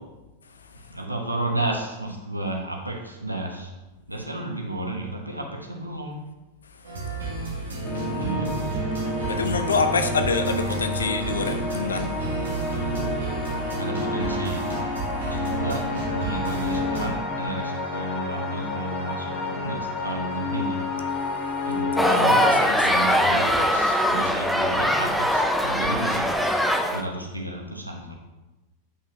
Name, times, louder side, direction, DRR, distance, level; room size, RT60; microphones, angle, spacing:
voice 1, 0.9-3.7 4.1-6.2 8.1-8.8 13.8-14.7 15.2-20.8 21.7-26.3 26.9-28.2, right 2 dB, 85° right, 2 dB, 0.9 m, -32 dB
sound 1, 6.8-17.1, right 2 dB, 65° right, 1.4 m, -31 dB
sound 2, 7.8-22.1, left 2 dB, 25° left, 1.4 m, -30 dB
voice 2, 9.2-13.1 13.5-13.6 22.0-23.0, left 4 dB, 70° left, 8 dB, 0.6 m, -28 dB
sound 3, 22.0-27.0, equal, ahead, 0.5 m, -21 dB
8.0 x 5.5 x 2.9 m, 1.1 s
figure-of-eight pair, 90°, 0 cm